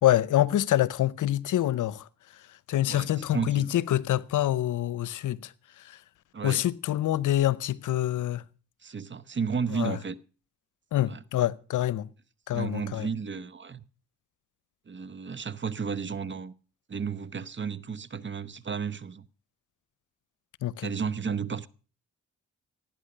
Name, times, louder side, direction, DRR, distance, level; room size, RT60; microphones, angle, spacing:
voice 1, 0.0-2.0 2.7-5.5 5.8-6.0 6.4-8.4 9.7-10.0 10.9-12.1 12.5-13.1 20.6-20.9, left 13 dB, 75° left, 0.7 m, -26 dB
voice 2, 2.9-3.8 6.3-6.6 8.8-10.2 11.1-11.2 12.5-13.8 14.9-16.5 16.9-19.2 20.8-21.7, right 6 dB, 35° right, 0.9 m, -33 dB
16.5 x 9.1 x 6.6 m
supercardioid pair, 55°, 31 cm